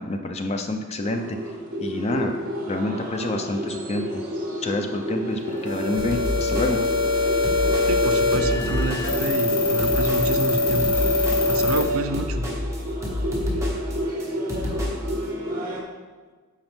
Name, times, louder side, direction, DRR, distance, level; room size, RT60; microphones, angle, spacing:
voice 1, 0.0-1.4 1.8-2.3 2.6-4.2 4.6-6.8, left 2 dB, 30° left, 5 dB, 0.4 m, -28 dB
sound 1, 1.0-15.8, equal, 40° right, 1.0 m, -31 dB
sound 2, 5.7-11.8, left 3 dB, 65° left, 1.6 m, -23 dB
sound 3, 6.0-15.1, left 1 dB, 15° right, 1.1 m, -30 dB
voice 2, 7.9-11.0 11.5-12.5, right 3 dB, 65° right, 9 dB, 0.5 m, -28 dB
7.9 x 5.0 x 3.6 m, 1.4 s
head